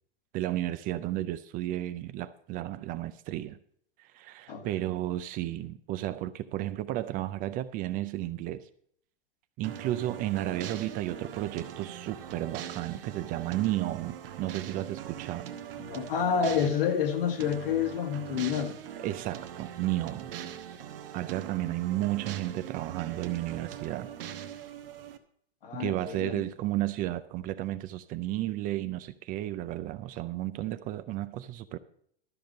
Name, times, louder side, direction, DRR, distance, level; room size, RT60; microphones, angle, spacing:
voice 1, 0.3-3.6 4.0-8.6 9.6-15.5 19.0-20.3 21.1-24.1 25.7-31.8, right 15 dB, 30° right, 0.4 m, -33 dB
sound 1, 9.6-25.2, right 10 dB, 70° right, 1.1 m, -42 dB
voice 2, 15.8-18.8 25.6-26.4, left 7 dB, 65° left, 1.7 m, -29 dB
12.5 x 5.2 x 7.4 m
hypercardioid pair, 115°, 30 cm